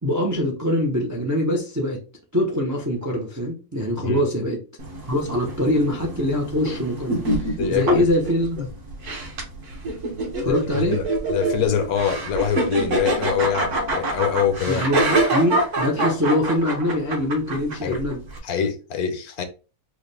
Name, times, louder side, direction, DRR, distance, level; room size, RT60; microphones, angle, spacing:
voice 1, 0.0-2.0 2.3-4.6 5.1-8.7 10.4-11.0 14.7-18.2, left 1 dB, 30° right, 0.3 m, -23 dB
sound 1, 4.8-18.4, right 2 dB, 55° right, 1.3 m, -26 dB
voice 2, 10.5-14.8 17.8-18.0 18.4-19.4, left 8 dB, 75° left, 1.2 m, -24 dB
4.7 x 2.1 x 3.3 m
omnidirectional pair, 1.6 m